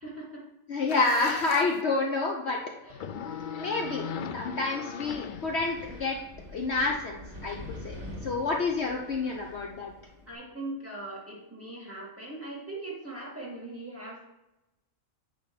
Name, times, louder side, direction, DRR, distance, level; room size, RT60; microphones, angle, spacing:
voice 1, 0.0-0.4 2.8-3.0 8.5-8.6 10.3-14.2, right 2 dB, 10° right, -6 dB, 2.0 m, -40 dB
voice 2, 0.7-2.6 3.6-4.1 4.3-6.2 6.5-7.6 7.8-8.0 8.2-9.9, left 3 dB, 55° left, 1 dB, 1.0 m, -28 dB
sound 1, 0.9-1.8 2.9-6.0, left 7 dB, 70° left, 0.4 m, -38 dB
Wind, 5.1-10.3, left 1 dB, 55° right, 2.9 m, -45 dB
9.4 x 3.4 x 5.9 m, 0.96 s
omnidirectional pair, 1.4 m